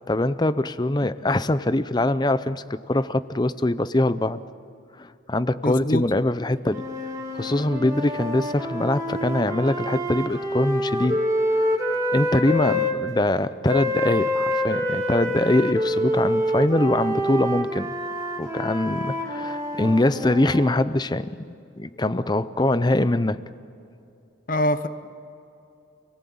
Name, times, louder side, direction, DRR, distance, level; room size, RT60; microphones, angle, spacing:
voice 1, 0.1-4.4 5.0-6.8 7.3-11.2 12.1-17.9 18.4-23.4, left 1 dB, 20° left, 14 dB, 0.6 m, -23 dB
voice 2, 5.6-6.0 24.5-24.9, left 1 dB, 40° left, 11 dB, 0.9 m, -23 dB
sound 1, 6.7-13.0 13.7-20.8, equal, 15° right, 2.3 m, -27 dB
28.5 x 19.0 x 8.7 m, 2.7 s
head